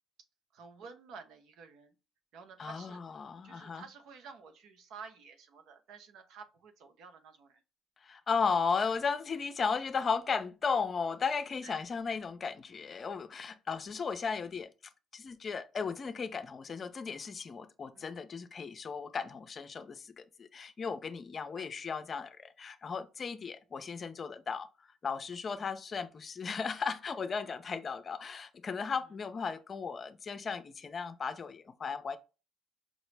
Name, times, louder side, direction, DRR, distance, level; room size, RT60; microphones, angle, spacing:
voice 1, 0.5-2.0 2.3-3.0 3.4-7.6 11.6-11.8 17.9-18.2 21.4-21.7 25.6-25.7, right 5 dB, 70° right, 0.8 m, -51 dB
voice 2, 2.6-3.9 8.0-14.7 15.1-24.7 25.0-32.2, left 5 dB, 35° left, 0.5 m, -35 dB
5.2 x 2.0 x 3.3 m
cardioid pair, 100°, 0 cm